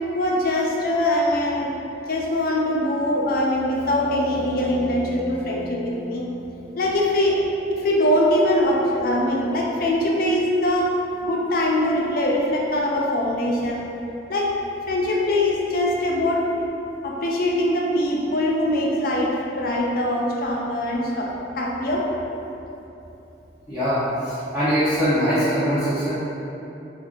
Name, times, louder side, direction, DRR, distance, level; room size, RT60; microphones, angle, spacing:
voice 1, 0.1-1.7 2.1-6.3 6.8-7.4 7.8-10.9 11.2-13.8 14.3-14.5 14.9-16.4 17.0-22.1, left 1 dB, 50° left, -2 dB, 0.4 m, -22 dB
sound 1, 3.0-8.6, equal, 75° right, 1.2 m, -41 dB
voice 2, 23.7-26.1, equal, 5° right, -18 dB, 0.7 m, -22 dB
2.5 x 2.4 x 3.7 m, 2.9 s
head